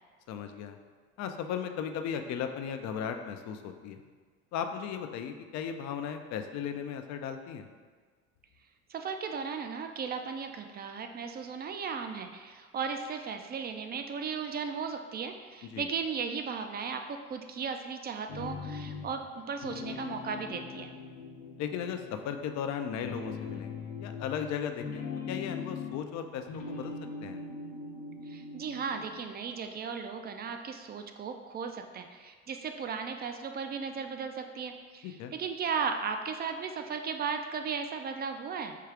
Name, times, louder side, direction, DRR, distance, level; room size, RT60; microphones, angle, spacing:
voice 1, 0.3-0.8 1.2-4.0 4.5-7.7 15.7-15.9 21.6-23.7 24.0-26.9 27.2-27.4 35.0-35.3, left 8 dB, 55° left, 7 dB, 0.5 m, -36 dB
voice 2, 8.9-20.9 28.3-38.8, right 6 dB, 30° right, 6 dB, 0.4 m, -36 dB
sound 1, 18.3-19.3 19.6-22.6 23.0-26.1 26.4-29.1, left 4 dB, 85° left, 0.9 m, -41 dB
4.6 x 2.4 x 4.8 m, 1.5 s
supercardioid pair, 90°, 34 cm